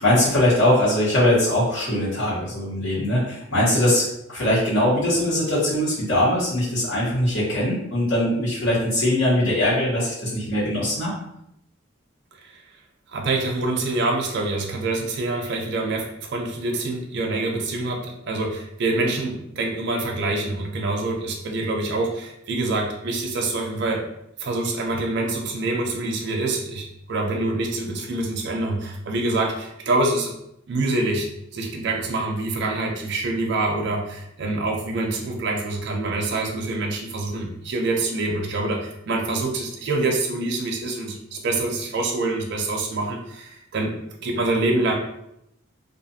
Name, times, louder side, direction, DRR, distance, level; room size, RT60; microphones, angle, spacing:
voice 1, 0.0-11.1, left 1 dB, 80° left, -9 dB, 1.2 m, -21 dB
voice 2, 13.1-24.0 24.4-30.3 30.7-43.9 44.2-44.9, right 2 dB, 60° right, 0 dB, 0.4 m, -26 dB
2.5 x 2.4 x 2.7 m, 0.79 s
head